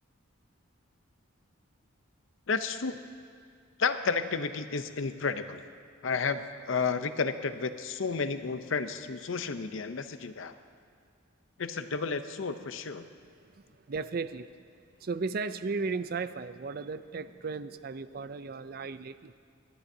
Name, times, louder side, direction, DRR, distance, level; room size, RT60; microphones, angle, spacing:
voice 1, 2.5-2.9 3.8-5.6 6.0-10.5 11.6-13.1, left 5 dB, 70° left, 10 dB, 0.6 m, -31 dB
voice 2, 13.2-14.6 15.0-19.3, right 4 dB, 45° right, 13 dB, 0.4 m, -36 dB
27.5 x 11.5 x 2.7 m, 2.2 s
head